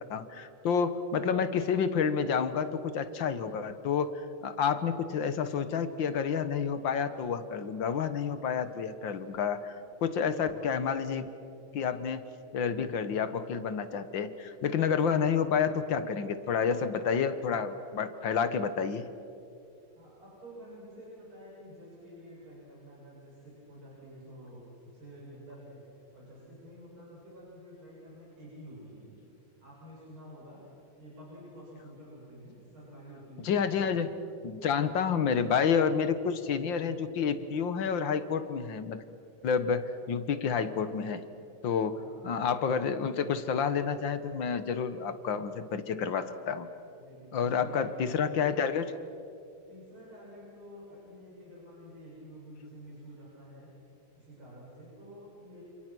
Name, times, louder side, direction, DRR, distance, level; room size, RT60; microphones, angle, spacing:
voice 1, 0.1-11.3 11.7-12.3 12.5-19.0 33.4-34.1 34.4-39.0 39.4-41.2 41.6-42.0 42.2-46.7 47.3-48.9, left 6 dB, 70° left, 11 dB, 1.9 m, -29 dB
voice 2, 19.9-25.9 26.1-29.2 29.6-33.9 41.8-42.4 47.0-48.1 49.7-53.7 54.2-55.6, equal, 90° right, -6 dB, 8.4 m, -49 dB
29.0 x 27.5 x 6.2 m, 2.6 s
omnidirectional pair, 2.2 m